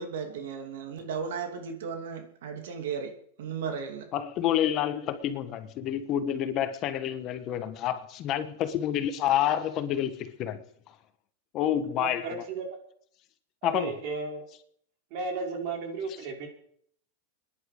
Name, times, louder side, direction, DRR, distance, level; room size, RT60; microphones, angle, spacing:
voice 1, 0.0-4.1, right 6 dB, 80° right, 2.7 m, -35 dB
voice 2, 4.1-10.6 11.5-12.4 13.6-13.9, left 10 dB, 40° left, 1.3 m, -28 dB
voice 3, 12.0-12.8 13.6-14.4 15.1-16.5, right 4 dB, 55° right, 4.9 m, -34 dB
24.0 x 10.5 x 5.1 m
supercardioid pair, 145°, 0 cm